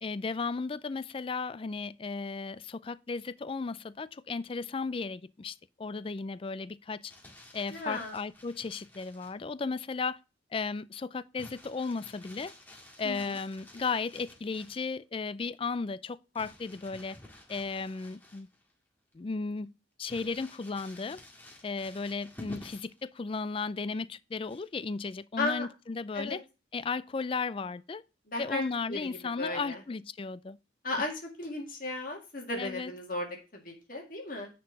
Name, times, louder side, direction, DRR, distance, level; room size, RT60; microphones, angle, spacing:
voice 1, 0.0-7.1 7.5-10.2 10.5-12.5 13.0-17.2 17.5-18.5 19.1-19.7 20.0-21.2 21.6-26.4 26.7-28.0 28.4-30.6 32.6-32.9, left 4 dB, 30° left, 0.3 m, -35 dB
Crumpling crinkling, 6.9-9.4 11.4-14.9 16.4-18.7 19.1-19.2 20.1-23.0 24.4-24.9, left 1 dB, 10° left, 1.9 m, -51 dB
voice 2, 7.7-8.2 13.0-13.4 25.4-25.7 26.1-26.4 28.3-28.6 28.9-29.8 30.8-31.1 31.4-34.5, left 2 dB, 45° left, 2.0 m, -35 dB
10.5 x 4.4 x 5.2 m
head